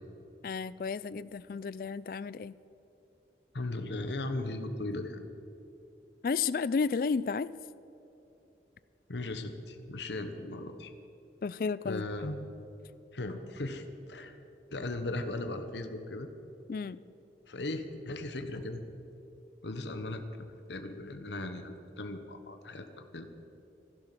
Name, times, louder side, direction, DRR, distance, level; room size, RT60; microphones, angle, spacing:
voice 1, 0.4-2.5 6.2-7.5 11.4-12.0 16.7-17.0, left 5 dB, 55° left, 18 dB, 0.3 m, -32 dB
voice 2, 3.5-5.2 9.1-10.9 11.8-12.4 13.1-14.4 14.7-16.3 17.5-18.8 19.6-23.3, left 2 dB, 85° left, 7 dB, 1.2 m, -37 dB
14.5 x 12.0 x 7.6 m, 2.9 s
head